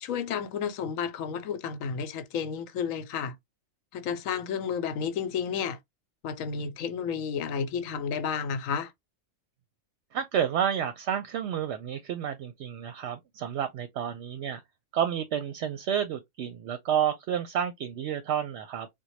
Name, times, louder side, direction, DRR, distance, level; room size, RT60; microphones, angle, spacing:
voice 1, 0.0-3.4 3.9-5.8 6.2-8.9, left 7 dB, 80° left, 1.0 m, -31 dB
voice 2, 10.1-14.6 14.9-18.9, right 9 dB, 65° right, 0.8 m, -30 dB
3.7 x 2.2 x 3.0 m
omnidirectional pair, 1.4 m